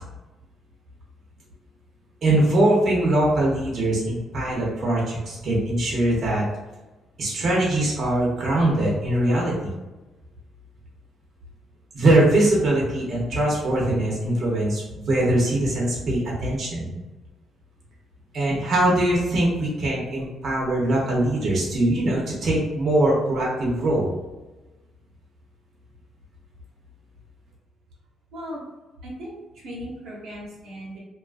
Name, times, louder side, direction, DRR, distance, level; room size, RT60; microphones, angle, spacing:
voice 1, 2.2-6.4 7.2-9.7 11.9-16.9 18.3-24.1, right 1 dB, 50° right, -4 dB, 0.8 m, -22 dB
voice 2, 28.3-28.6 29.0-31.0, equal, 80° right, -3 dB, 0.9 m, -37 dB
2.6 x 2.4 x 2.5 m, 1.1 s
cardioid pair, 90°, 0 cm